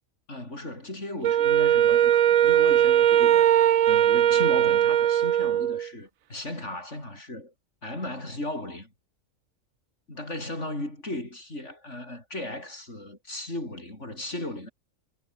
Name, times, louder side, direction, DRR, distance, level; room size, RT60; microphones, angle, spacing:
voice 1, 0.3-3.5 3.9-7.5 7.8-8.9 10.1-14.7, left 1 dB, 60° left, 8.1 m, -36 dB
Wind instrument woodwind instrument, 1.2-5.9, right 10 dB, 85° right, 1.3 m, -20 dB
omnidirectional pair, 1.4 m